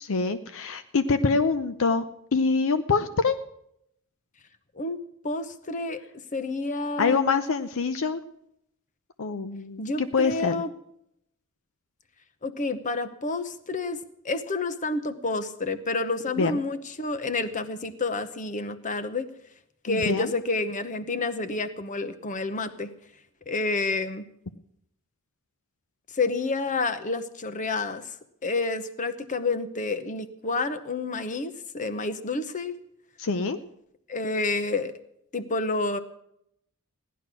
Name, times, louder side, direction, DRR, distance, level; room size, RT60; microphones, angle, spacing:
voice 1, 0.1-2.0 2.3-3.4 7.0-8.2 9.2-10.6 16.4-16.6 19.9-20.3 33.2-33.6, left 4 dB, 65° left, 11 dB, 0.6 m, -25 dB
voice 2, 4.7-6.0 6.3-7.2 9.8-10.7 12.4-14.0 14.2-19.3 19.8-22.9 23.5-24.2 26.1-28.1 28.4-32.8 34.1-34.9 35.3-36.0, left 3 dB, 35° left, 11 dB, 0.9 m, -29 dB
16.5 x 11.0 x 6.1 m, 0.75 s
head